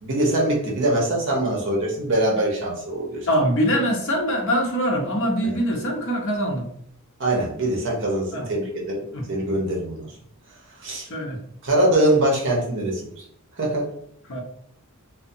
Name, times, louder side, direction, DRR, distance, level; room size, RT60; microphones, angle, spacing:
voice 1, 0.0-3.3 5.4-5.6 7.2-9.0 9.3-10.1 10.8-11.1 11.6-13.2 13.6-13.9, right 1 dB, 60° right, -2 dB, 0.7 m, -23 dB
voice 2, 3.3-6.6 8.3-8.4 9.1-9.2 11.1-11.4 14.3-14.4, equal, 65° left, 0 dB, 0.7 m, -23 dB
2.6 x 2.0 x 2.6 m, 0.67 s
head